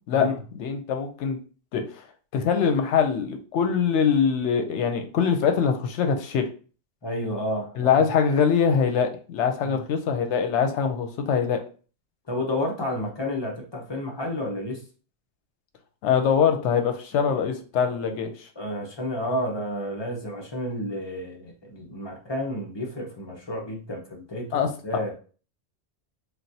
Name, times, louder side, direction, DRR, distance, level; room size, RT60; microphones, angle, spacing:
voice 1, 0.5-1.4 1.7-2.0 2.3-6.5 7.7-11.6 16.0-18.3 24.5-24.7, left 7 dB, 85° left, 6 dB, 0.9 m, -23 dB
voice 2, 7.0-8.1 9.6-9.8 12.3-14.8 17.1-17.3 18.0-18.2 18.6-25.1, left 1 dB, 30° left, 0 dB, 0.6 m, -31 dB
3.3 x 2.4 x 2.6 m, 0.38 s
omnidirectional pair, 1.2 m